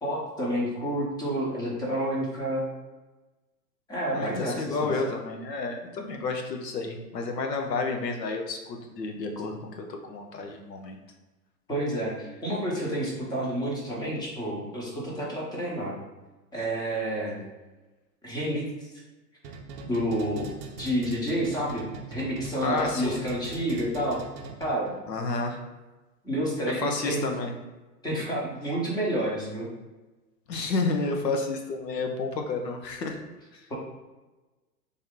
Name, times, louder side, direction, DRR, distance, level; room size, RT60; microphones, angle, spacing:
voice 1, 0.0-2.7 3.9-4.9 11.7-15.9 16.5-17.4 18.2-18.9 19.8-24.2 24.6-24.9 26.2-27.3 28.0-29.7 33.7-33.8, right 1 dB, 10° left, -4 dB, 0.8 m, -29 dB
voice 2, 4.1-11.0 22.6-23.2 25.1-25.6 26.8-27.5 30.5-33.2 33.5-33.7, left 3 dB, 85° left, 3 dB, 0.9 m, -30 dB
sound 1, 19.4-25.0, right 4 dB, 40° right, 0.6 m, -41 dB
3.6 x 2.8 x 3.6 m, 1.2 s
hypercardioid pair, 135°, 49 cm